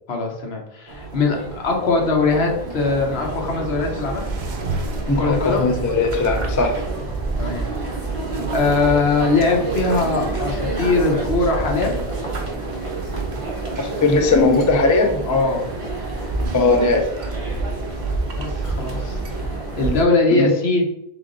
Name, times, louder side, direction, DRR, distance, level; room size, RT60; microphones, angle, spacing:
voice 1, 0.1-4.3 5.2-5.7 7.4-7.7 8.5-12.0 15.2-15.6 18.4-19.2 19.5-20.9, left 3 dB, 75° left, 1 dB, 1.2 m, -21 dB
sound 1, 0.9-20.0, right 2 dB, 30° right, 1.2 m, -28 dB
sound 2, 2.8-19.4, right 3 dB, 50° right, 0.7 m, -34 dB
voice 2, 5.1-6.8 13.8-15.2 16.5-17.1 20.3-20.5, left 3 dB, 30° left, 4 dB, 0.3 m, -18 dB
3.7 x 3.5 x 3.8 m, 0.79 s
omnidirectional pair, 1.1 m